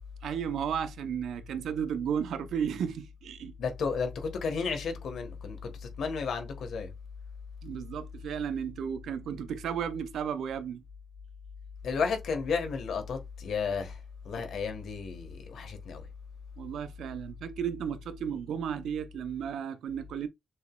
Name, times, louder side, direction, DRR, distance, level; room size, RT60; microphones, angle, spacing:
voice 1, 0.2-3.5 7.6-10.8 16.6-20.3, right 8 dB, 90° right, 0.6 m, -34 dB
voice 2, 3.6-6.9 11.8-14.0 14.2-16.1, left 5 dB, 80° left, 1.3 m, -33 dB
6.3 x 3.0 x 2.2 m
cardioid pair, 80°, 0 cm